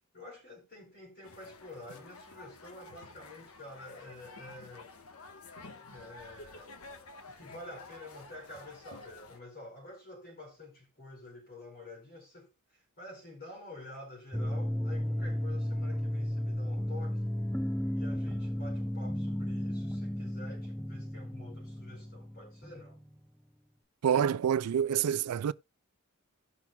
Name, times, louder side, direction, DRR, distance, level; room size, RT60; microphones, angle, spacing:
voice 1, 0.1-4.9 5.8-6.7 7.3-17.2 17.9-23.0, left 2 dB, 50° left, 4.6 m, -49 dB
sound 1, 1.2-9.4, left 3 dB, 70° left, 1.2 m, -51 dB
sound 2, 14.3-23.1, equal, 5° left, 0.7 m, -34 dB
voice 2, 24.0-25.5, right 8 dB, 80° right, 0.4 m, -27 dB
17.5 x 5.9 x 2.2 m
head